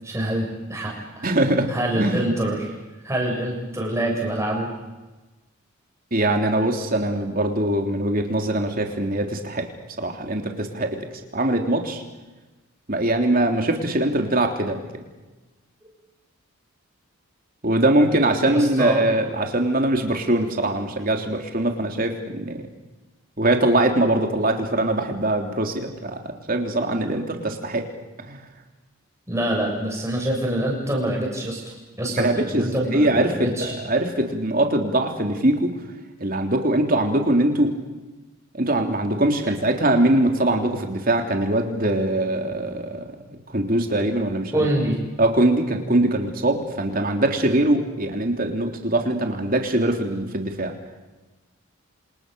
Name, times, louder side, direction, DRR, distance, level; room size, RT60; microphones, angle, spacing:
voice 1, 0.0-1.2 1.7-2.7 3.0-4.7 18.5-19.1 29.3-33.7 44.5-45.0, right 1 dB, 15° right, -1 dB, 7.2 m, -25 dB
voice 2, 1.2-1.7 1.9-2.2 6.1-9.7 10.0-12.0 12.9-15.0 17.6-22.6 23.4-27.9 28.3-28.4 32.1-35.7 36.2-37.7 38.5-44.7 45.2-50.7, right 1 dB, 40° right, 4 dB, 3.3 m, -22 dB
28.0 x 26.5 x 7.0 m, 1.2 s
head